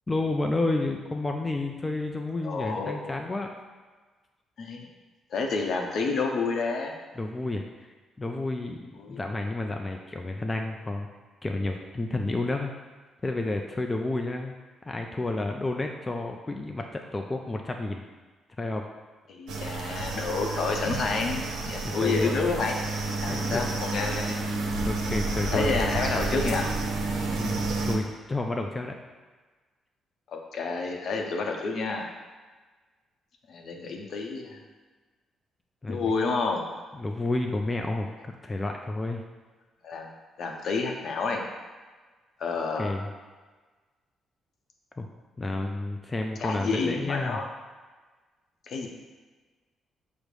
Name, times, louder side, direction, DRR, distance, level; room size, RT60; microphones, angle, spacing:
voice 1, 0.1-3.5 7.2-7.9 8.2-11.1 11.4-12.7 13.2-14.6 14.8-18.0 18.6-18.8 21.8-22.4 23.3-23.6 24.9-25.7 27.3-28.9 35.8-36.1 36.9-39.2 42.8-43.1 45.0-45.1 45.4-47.4, left 2 dB, 20° left, 2 dB, 0.3 m, -30 dB
voice 2, 2.4-3.1 4.6-4.9 5.3-6.9 9.0-9.2 19.3-22.7 23.2-24.4 25.5-26.7 30.3-32.1 33.5-34.6 35.9-36.6 39.8-40.1 40.4-41.4 42.4-42.9 46.4-47.5 48.7-48.9, left 4 dB, 60° left, 2 dB, 0.6 m, -29 dB
sound 1, 19.5-28.0, right 3 dB, 80° right, 0.6 m, -30 dB
5.2 x 2.0 x 4.7 m, 1.3 s
cardioid pair, 90°, 0 cm